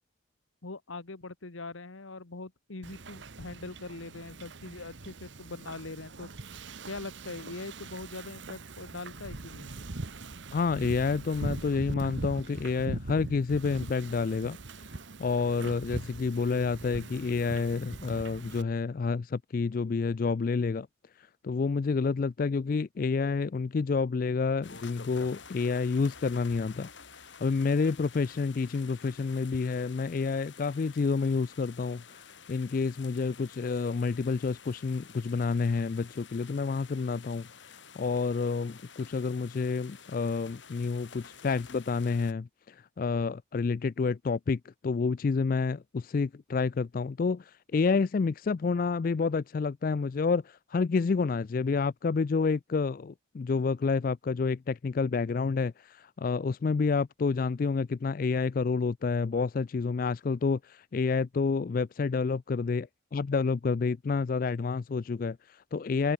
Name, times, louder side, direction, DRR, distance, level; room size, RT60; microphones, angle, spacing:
voice 1, 0.6-6.3 6.8-9.7, left 3 dB, 80° left, 1.4 m, -42 dB
Wind / Ocean, 2.8-18.6, right 2 dB, 65° right, 1.2 m, -41 dB
voice 2, 10.5-14.6 14.9-20.9 21.2-66.1, left 4 dB, 45° left, 0.3 m, -29 dB
sound 1, 24.6-42.3, left 6 dB, 65° left, 5.7 m, -51 dB
head